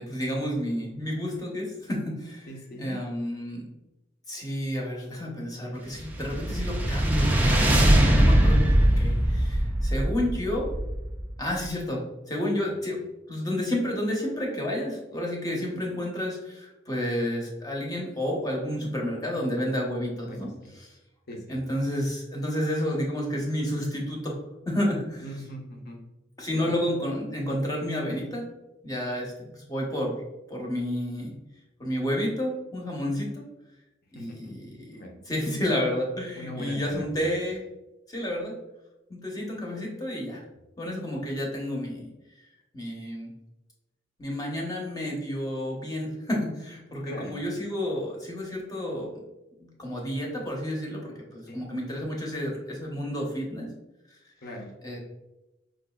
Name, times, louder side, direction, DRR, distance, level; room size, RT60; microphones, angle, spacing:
voice 1, 0.0-2.5 2.8-3.6 4.3-10.7 11.4-13.0 13.3-20.5 20.8-20.9 21.5-24.4 24.7-25.2 26.4-28.5 28.8-30.2 30.5-31.3 31.8-33.4 34.2-34.9 35.3-37.6 38.1-38.5 39.1-40.4 40.8-42.1 42.7-43.3 44.2-49.1 49.6-53.7 54.8-55.0, equal, 20° left, -2 dB, 0.8 m, -30 dB
voice 2, 2.5-3.0 12.6-12.7 20.2-20.7 21.3-21.6 25.2-26.0 26.5-26.7 34.1-34.5 34.9-35.2 36.3-37.3 39.7-39.8 47.1-47.4 51.5-51.6 54.4-54.7, left 1 dB, 55° left, 1 dB, 0.7 m, -40 dB
sound 1, 5.9-11.4, right 1 dB, 10° right, 0.4 m, -21 dB
4.9 x 2.5 x 2.3 m, 0.98 s
head